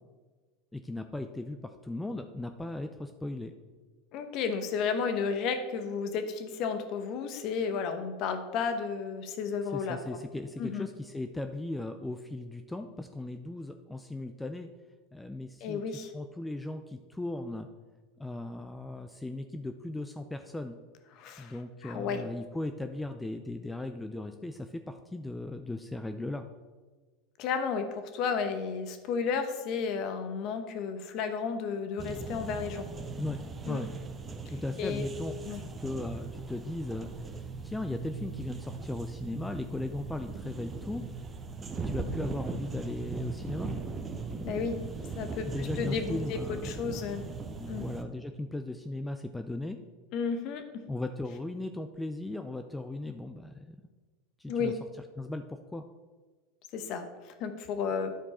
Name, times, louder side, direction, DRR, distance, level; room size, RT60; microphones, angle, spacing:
voice 1, 0.7-3.5 9.7-14.7 15.1-15.8 16.1-17.7 18.2-20.7 21.4-26.5 33.2-33.4 33.7-33.9 34.5-35.3 35.8-41.0 41.8-43.7 45.4-46.7 47.6-49.8 50.9-53.8 54.4-54.8 55.2-55.8, left 2 dB, 10° left, 7 dB, 0.4 m, -37 dB
voice 2, 4.1-10.2 10.6-10.9 15.6-16.1 21.2-21.5 21.8-22.2 27.4-32.9 33.7-33.8 34.8-35.0 35.4-35.6 44.4-44.8 45.1-47.2 47.7-47.9 50.1-50.6 54.5-54.7 56.7-57.1 57.4-58.1, left 5 dB, 55° left, 8 dB, 1.0 m, -32 dB
sound 1, 32.0-48.0, right 4 dB, 25° right, 0.8 m, -39 dB
10.0 x 4.5 x 4.2 m, 1.3 s
hypercardioid pair, 100°, 0 cm